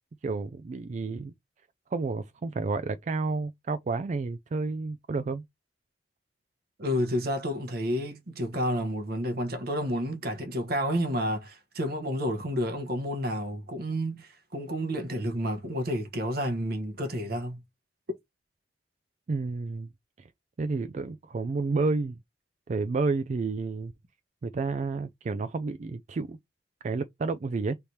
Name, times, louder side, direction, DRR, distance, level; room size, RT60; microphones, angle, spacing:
voice 1, 0.2-1.3 1.9-5.4 19.3-19.9 20.2-20.3 20.6-22.2 22.7-23.9 24.4-26.4 26.8-27.7, right 3 dB, 45° right, 0.3 m, -30 dB
voice 2, 6.8-17.6, equal, 60° right, 1.1 m, -30 dB
3.4 x 2.8 x 4.5 m
head